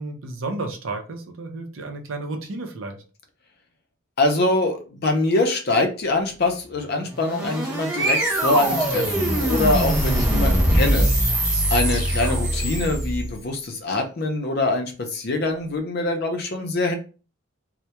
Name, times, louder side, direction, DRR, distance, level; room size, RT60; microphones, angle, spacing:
voice 1, 0.0-3.0, right 2 dB, 75° right, 5 dB, 0.5 m, -32 dB
voice 2, 4.2-11.1 11.7-16.9, left 2 dB, 50° left, 4 dB, 0.5 m, -24 dB
sound 1, 7.0-13.3, right 1 dB, 15° right, 0.5 m, -23 dB
sound 2, 7.3-11.3, equal, 20° left, 0.8 m, -26 dB
2.2 x 2.1 x 2.8 m, 0.35 s
head